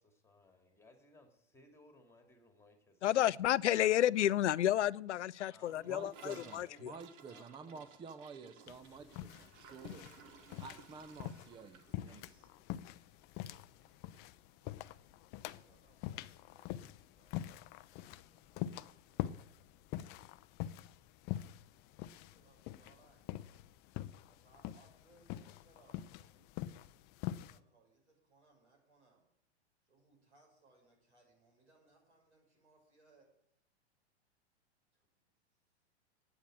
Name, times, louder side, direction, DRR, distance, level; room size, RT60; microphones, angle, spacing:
voice 1, 0.0-3.2 5.5-6.1 6.3-6.9 7.3-7.9 9.9-10.5, left 2 dB, 10° left, 2.5 m, -63 dB
voice 2, 3.0-6.9, left 12 dB, 85° left, 0.5 m, -31 dB
Gurgling / Toilet flush, 5.6-13.9 14.1-14.3 14.6-15.0 15.3-15.4 15.7-15.8 16.7-16.8, right 6 dB, 50° right, 1.6 m, -59 dB
voice 3, 5.9-10.1 10.6-12.5, right 5 dB, 15° right, 0.6 m, -51 dB
sound 1, 8.7-27.6, left 13 dB, 30° left, 0.5 m, -45 dB
voice 4, 13.5-13.9 14.4-14.5 15.2-20.1 21.9-23.4 24.2-29.3 29.8-33.3 34.9-35.2, right 2 dB, 85° right, 6.3 m, -70 dB
9.4 x 8.9 x 8.9 m
hypercardioid pair, 115°, 34 cm